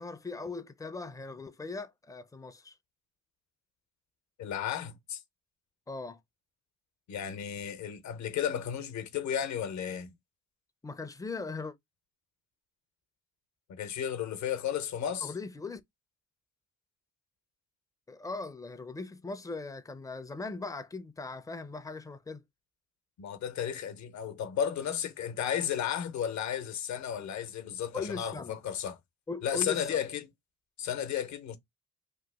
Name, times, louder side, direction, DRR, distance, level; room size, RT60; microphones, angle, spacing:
voice 1, 0.0-2.8 5.9-6.2 10.8-11.7 15.2-15.8 18.1-22.4 27.9-28.6 29.3-30.0, left 3 dB, 10° left, 0.4 m, -39 dB
voice 2, 4.4-5.2 7.1-10.1 13.7-15.3 23.2-29.0 29.4-30.2 30.8-31.6, left 9 dB, 65° left, 0.8 m, -33 dB
3.0 x 2.4 x 3.4 m
cardioid pair, 90°, 30 cm